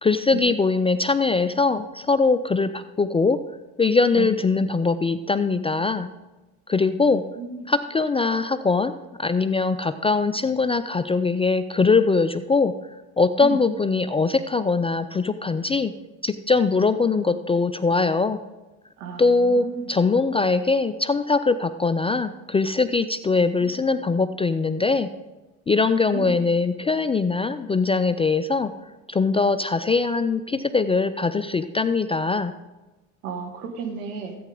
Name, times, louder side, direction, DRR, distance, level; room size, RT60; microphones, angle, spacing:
voice 1, 0.0-3.4 3.8-6.1 6.7-7.2 7.7-8.9 9.2-12.7 13.2-15.9 16.2-18.4 19.2-25.1 25.7-28.7 29.1-32.5, left 4 dB, 15° left, 11 dB, 0.3 m, -22 dB
voice 2, 6.9-7.6 13.4-13.6 17.2-17.3 19.0-19.8 23.4-23.7 26.1-26.3 33.2-34.4, right 6 dB, 80° right, 5 dB, 1.4 m, -34 dB
14.0 x 8.6 x 3.8 m, 1.1 s
hypercardioid pair, 55°, 43 cm